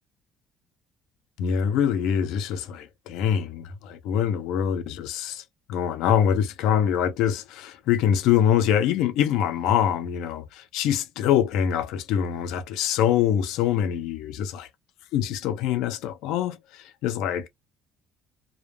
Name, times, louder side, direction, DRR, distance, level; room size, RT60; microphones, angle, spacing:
voice 1, 1.4-5.4 5.7-14.7 15.1-17.5, left 9 dB, 80° left, 0.5 m, -24 dB
2.1 x 2.1 x 3.1 m
cardioid pair, 135°, 0 cm